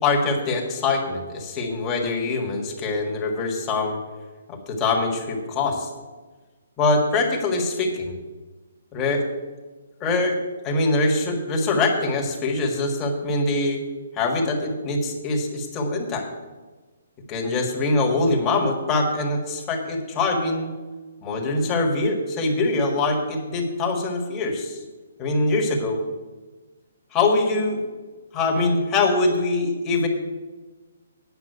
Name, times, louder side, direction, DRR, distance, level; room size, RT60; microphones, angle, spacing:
voice 1, 0.0-4.0 4.5-5.9 6.8-8.1 8.9-9.2 10.0-10.4 10.6-13.8 14.1-16.3 17.3-20.7 21.2-24.8 25.2-26.0 27.1-27.8 28.3-30.1, left 3 dB, 20° left, 0 dB, 1.7 m, -23 dB
9.5 x 5.7 x 8.0 m, 1.3 s
hypercardioid pair, 155°, 0 cm